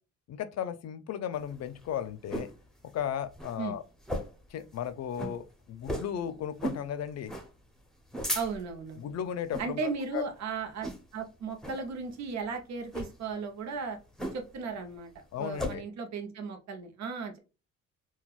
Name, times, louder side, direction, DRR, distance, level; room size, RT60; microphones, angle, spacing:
voice 1, 0.3-2.5 2.9-3.8 4.5-7.3 9.0-10.2 15.3-15.8, left 9 dB, 60° left, 0.6 m, -35 dB
sound 1, 1.4-2.6 3.0-3.1 3.3-3.6 4.0-4.5 4.8-4.9 5.1-5.4 5.8-6.2 6.6-6.9 7.3-7.5 7.9-8.8 9.4-9.7 10.1-10.4 10.8-11.2 11.6-11.8 12.8-13.1 14.2-14.6 15.0-15.7, equal, ahead, 0.8 m, -36 dB
voice 2, 8.3-9.1 9.6-14.0 14.3-17.4, right 5 dB, 65° right, 0.8 m, -36 dB
3.9 x 2.3 x 2.4 m
cardioid pair, 90°, 30 cm